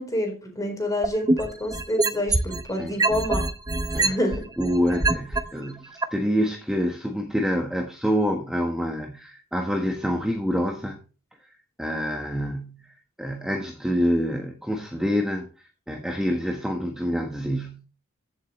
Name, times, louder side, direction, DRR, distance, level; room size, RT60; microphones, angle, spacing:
voice 1, 0.0-3.4 4.0-4.5, left 1 dB, 15° left, 4.1 m, -28 dB
sound 1, 1.0-2.6 3.0-5.4 6.0-6.1, right 2 dB, 20° right, 0.9 m, -23 dB
voice 2, 4.6-11.0 11.8-15.5 15.9-17.8, equal, 5° right, 1.3 m, -27 dB
15.0 x 7.5 x 3.2 m
head